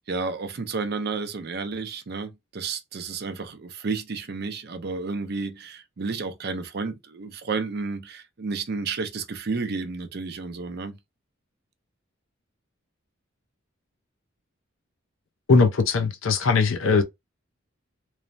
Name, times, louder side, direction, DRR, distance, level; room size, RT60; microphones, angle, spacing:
voice 1, 0.1-11.0, right 4 dB, 50° right, 0.5 m, -31 dB
voice 2, 15.5-17.0, left 4 dB, 70° left, 0.5 m, -20 dB
3.1 x 2.1 x 2.5 m
head